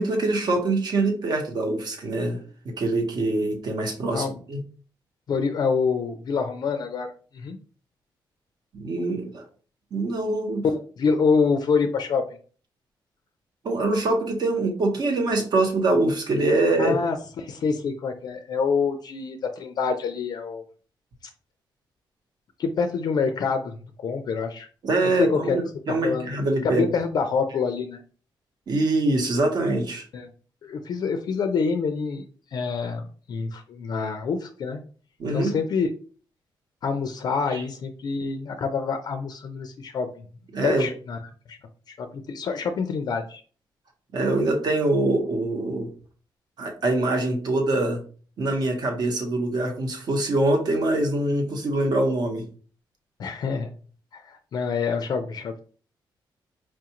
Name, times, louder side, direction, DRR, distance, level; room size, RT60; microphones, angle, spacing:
voice 1, 0.0-4.6 8.7-9.4 9.9-10.6 13.6-17.0 24.8-26.8 28.7-30.0 35.2-35.5 37.5-37.6 40.5-40.8 44.1-45.9 46.6-48.0 48.4-52.5, right 2 dB, 55° right, 3 dB, 1.0 m, -24 dB
voice 2, 5.3-7.6 10.6-12.2 16.8-20.6 22.6-24.7 25.2-25.6 26.0-26.4 26.6-28.0 30.1-30.3 30.6-32.2 32.5-34.8 35.3-35.9 36.8-40.1 40.6-41.2 41.5-41.6 41.9-43.4 53.2-53.7 54.1-55.6, left 5 dB, 55° left, 7 dB, 0.4 m, -26 dB
4.5 x 2.4 x 2.9 m, 0.41 s
cardioid pair, 140°, 8 cm